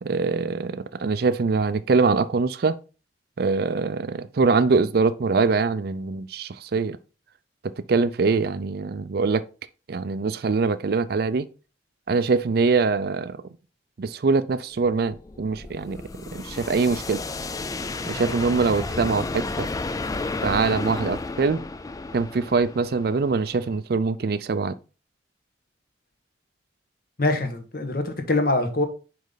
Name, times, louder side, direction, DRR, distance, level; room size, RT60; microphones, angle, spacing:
voice 1, 0.0-2.8 3.4-7.0 7.6-9.4 9.9-11.5 12.1-13.4 14.0-16.0 16.3-17.2 18.1-19.7 20.4-21.6 22.1-24.8, right 4 dB, 55° right, 0.4 m, -23 dB
sound 1, 15.0-23.8, left 3 dB, 20° left, 0.3 m, -32 dB
voice 2, 27.2-28.8, left 2 dB, 50° left, 1.2 m, -24 dB
5.2 x 5.1 x 3.9 m
head